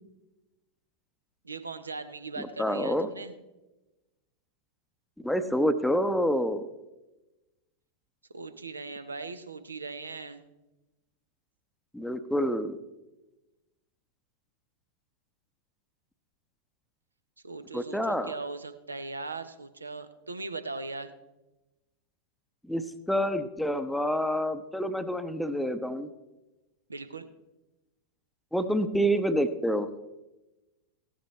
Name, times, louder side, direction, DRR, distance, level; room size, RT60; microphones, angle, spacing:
voice 1, 1.4-3.3 8.3-10.4 17.4-21.1 26.9-27.3, right 3 dB, 80° right, 10 dB, 0.8 m, -39 dB
voice 2, 2.4-3.1 5.2-6.7 11.9-12.8 17.7-18.3 22.7-26.1 28.5-29.9, equal, ahead, 10 dB, 0.8 m, -28 dB
16.0 x 11.5 x 3.2 m, 1.0 s
figure-of-eight pair, 90°, 0 cm